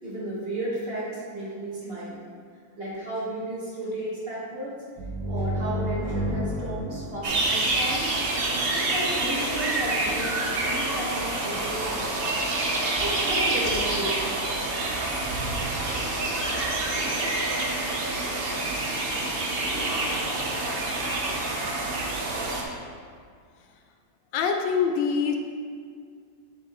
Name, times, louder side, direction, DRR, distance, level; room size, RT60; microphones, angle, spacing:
voice 1, 0.0-2.2 2.8-4.8 5.3-8.1 8.7-12.1 13.0-14.4, right 1 dB, 35° right, -7 dB, 1.5 m, -33 dB
sound 1, 5.0-8.5, equal, 80° right, 1.7 m, -31 dB
sound 2, 7.2-22.6, right 2 dB, 50° right, 0.7 m, -27 dB
voice 2, 24.3-25.4, left 6 dB, 75° left, 3 dB, 1.3 m, -24 dB
7.4 x 6.8 x 3.0 m, 2.1 s
omnidirectional pair, 2.1 m